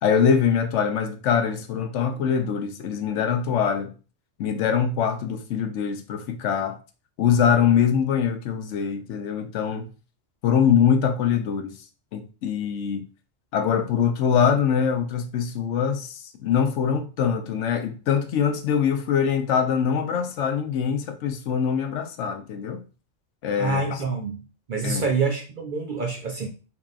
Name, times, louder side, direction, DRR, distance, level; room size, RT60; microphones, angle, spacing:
voice 1, 0.0-3.9 4.4-6.8 7.2-9.9 10.4-11.8 12.1-13.0 13.5-22.8 23.4-24.0 24.8-25.0, left 7 dB, 75° left, 0.9 m, -23 dB
voice 2, 23.6-24.4 24.7-26.5, right 4 dB, 55° right, 0.6 m, -26 dB
3.7 x 3.6 x 2.4 m
omnidirectional pair, 1.3 m